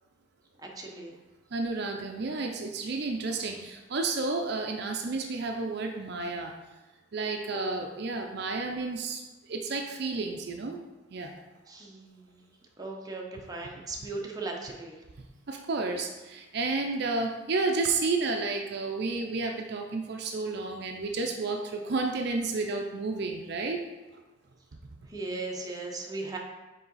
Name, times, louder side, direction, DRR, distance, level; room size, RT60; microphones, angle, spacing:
voice 1, 0.6-1.1 7.5-7.8 11.7-12.5 12.8-15.0 25.1-26.4, right 3 dB, 20° right, -1 dB, 0.8 m, -38 dB
voice 2, 1.5-6.5 7.1-10.8 11.1-11.3 15.5-23.8, right 3 dB, 60° right, 3 dB, 0.5 m, -31 dB
5.6 x 4.6 x 4.0 m, 1.2 s
head